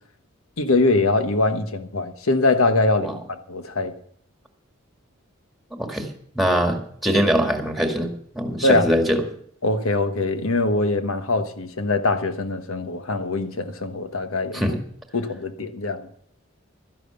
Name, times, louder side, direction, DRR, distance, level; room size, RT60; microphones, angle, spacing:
voice 1, 0.6-3.9 8.6-8.9 9.6-14.7 15.1-16.1, left 2 dB, 80° left, 1.3 m, -22 dB
voice 2, 5.7-6.1 6.4-9.2 14.5-14.8, equal, ahead, 1.8 m, -22 dB
12.5 x 11.0 x 6.8 m
head